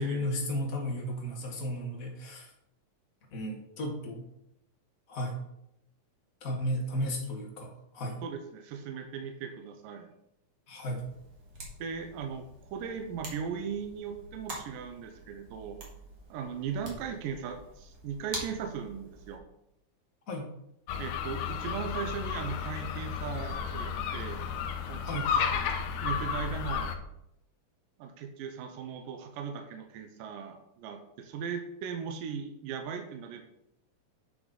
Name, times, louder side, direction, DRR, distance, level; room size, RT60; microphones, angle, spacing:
voice 1, 0.0-2.5 3.3-4.2 5.1-5.4 6.4-8.2 10.7-11.0 20.3-20.5 25.0-25.3, equal, 50° left, 0 dB, 1.0 m, -34 dB
voice 2, 8.2-10.1 11.8-15.8 16.3-19.4 21.0-24.4 24.9-25.7 26.0-27.0 28.0-33.4, right 6 dB, 80° right, 5 dB, 2.4 m, -38 dB
sound 1, 10.9-19.4, right 2 dB, 40° right, 1.8 m, -46 dB
sound 2, 20.9-27.0, left 7 dB, 75° left, 2.0 m, -33 dB
9.0 x 6.1 x 3.9 m, 0.81 s
omnidirectional pair, 4.0 m